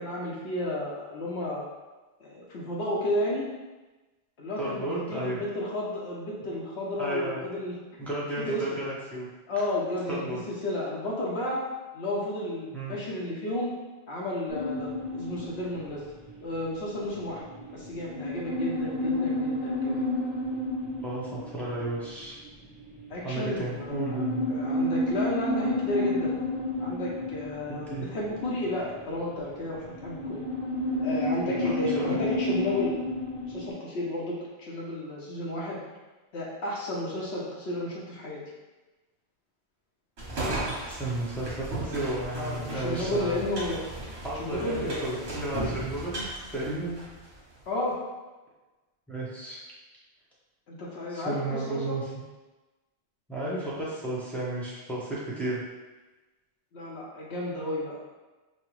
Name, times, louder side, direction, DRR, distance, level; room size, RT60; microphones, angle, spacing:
voice 1, 0.0-1.6 2.2-3.5 4.4-7.8 8.4-8.9 9.5-11.6 11.9-13.7 14.1-16.0 16.4-17.4 17.7-20.0 23.1-26.4 26.8-30.4 31.0-32.9 33.5-35.8 36.3-38.4 42.4-43.8 44.4-45.2 47.7-48.0 50.7-52.0 56.7-58.0, left 1 dB, 75° left, -4 dB, 0.9 m, -32 dB
voice 2, 4.6-5.4 7.0-7.4 8.0-9.3 10.1-10.4 12.7-12.9 21.0-22.4 23.2-24.5 27.7-28.1 31.5-32.2 40.6-43.4 44.2-47.0 49.1-49.6 51.1-52.0 53.3-55.6, right 1 dB, ahead, -7 dB, 0.9 m, -33 dB
sound 1, 14.5-33.7, left 1 dB, 50° right, 1.3 m, -31 dB
sound 2, 40.2-47.4, right 2 dB, 75° right, 1.4 m, -36 dB
5.6 x 2.1 x 3.1 m, 1.2 s
omnidirectional pair, 1.1 m